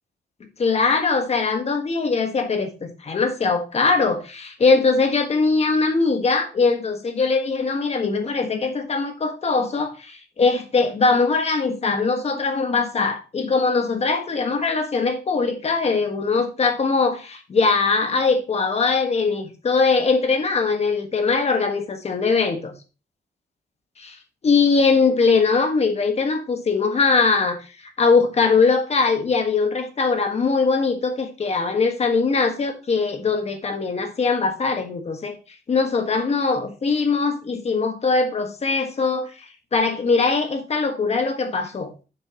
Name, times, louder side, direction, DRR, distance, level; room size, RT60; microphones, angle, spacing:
voice 1, 0.6-22.7 24.0-24.2 24.4-27.7 28.0-35.4 35.7-41.9, left 4 dB, 35° left, 1.5 m, -21 dB
10.0 x 6.9 x 2.9 m
wide cardioid pair, 145°, 17 cm